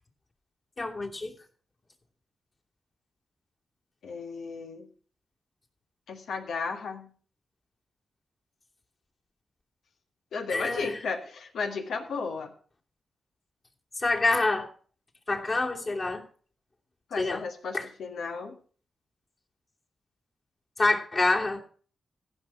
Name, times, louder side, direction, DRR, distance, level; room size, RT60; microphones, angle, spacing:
voice 1, 0.8-1.3 10.5-11.0 14.0-14.7 15.3-16.2 17.2-17.4 17.7-17.9 20.8-21.6, left 2 dB, 45° left, -1 dB, 2.9 m, -26 dB
voice 2, 4.0-4.9 6.1-7.1 10.3-12.5 17.1-18.6, left 4 dB, 75° left, 5 dB, 1.7 m, -34 dB
15.0 x 6.0 x 5.9 m, 0.43 s
supercardioid pair, 45°, 0 cm